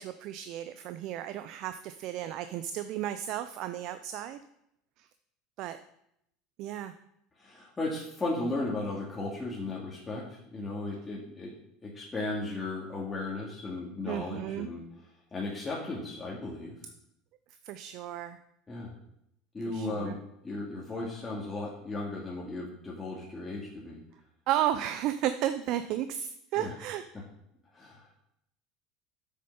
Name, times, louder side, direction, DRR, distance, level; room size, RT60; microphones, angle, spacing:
voice 1, 0.0-4.4 5.0-5.1 5.6-5.8 6.6-6.9 14.1-14.7 17.6-18.4 19.7-20.2 24.5-27.0, right 11 dB, 55° right, 10 dB, 0.5 m, -33 dB
voice 2, 7.4-11.5 11.8-14.8 15.3-16.8 18.7-18.9 19.5-20.2 20.4-24.0 26.6-26.7 27.7-28.1, left 2 dB, 20° left, -5 dB, 2.3 m, -36 dB
7.7 x 6.5 x 5.3 m, 0.77 s
hypercardioid pair, 80°, 0 cm